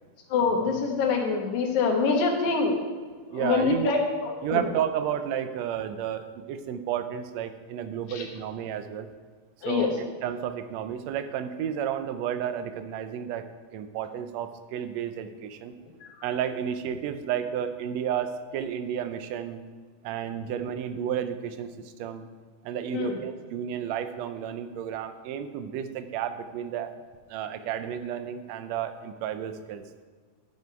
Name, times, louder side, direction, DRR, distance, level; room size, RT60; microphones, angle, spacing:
voice 1, 0.3-2.8 3.3-4.6 8.1-8.3 9.6-9.9 16.0-16.1 22.9-23.2, left 4 dB, 75° left, 2 dB, 2.6 m, -25 dB
voice 2, 3.3-3.9 4.4-9.1 9.6-13.5 13.7-15.7 16.2-19.6 20.0-21.7 22.0-22.3 22.6-26.9 27.3-29.8, right 9 dB, 75° right, 9 dB, 1.7 m, -32 dB
13.0 x 5.4 x 4.6 m, 1.5 s
omnidirectional pair, 3.5 m